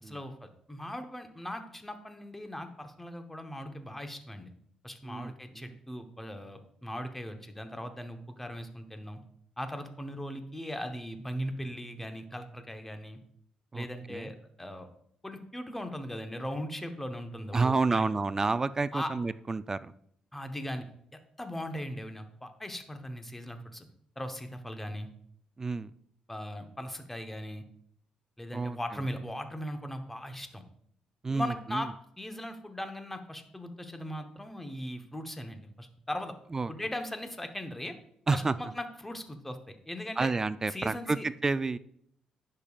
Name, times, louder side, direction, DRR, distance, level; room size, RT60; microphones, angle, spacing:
voice 1, 0.0-4.5 4.8-9.2 9.6-13.2 13.7-14.9 15.2-18.1 18.9-19.1 20.3-20.8 21.1-23.9 24.2-25.1 26.3-27.6 28.4-30.6 31.3-31.9 32.2-36.3 36.7-38.0 38.3-40.3 40.7-41.2, equal, 10° left, 6 dB, 0.9 m, -39 dB
voice 2, 5.0-5.7 13.7-14.3 17.5-19.9 25.6-25.9 28.5-29.0 31.2-31.9 36.5-36.7 38.3-38.6 40.2-41.8, right 3 dB, 25° right, 15 dB, 0.3 m, -30 dB
10.0 x 6.7 x 2.4 m, 0.68 s
cardioid pair, 100°, 2 cm